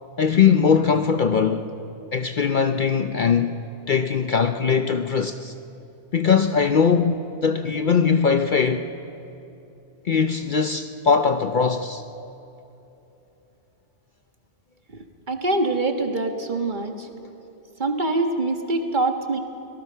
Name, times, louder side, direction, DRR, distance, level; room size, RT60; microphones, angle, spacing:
voice 1, 0.2-1.7 2.1-3.6 3.9-5.5 6.1-8.9 10.0-12.0, left 6 dB, 50° left, 0.7 m, -20 dB
voice 2, 15.3-17.1 17.8-19.4, right 2 dB, 40° right, 1.6 m, -24 dB
25.5 x 18.5 x 5.7 m
omnidirectional pair, 1.2 m